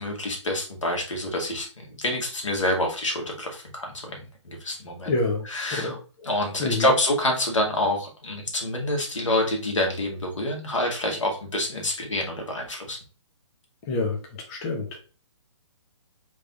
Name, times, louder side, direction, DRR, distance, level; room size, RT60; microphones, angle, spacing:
voice 1, 0.0-5.1 5.4-6.0 6.2-13.0, left 1 dB, 90° left, 1 dB, 1.7 m, -27 dB
voice 2, 5.1-5.4 5.7-5.9 6.6-6.9 13.9-14.2 14.5-15.0, left 3 dB, 30° left, 0 dB, 0.9 m, -26 dB
3.5 x 3.2 x 3.9 m, 0.35 s
hypercardioid pair, 150°, 16 cm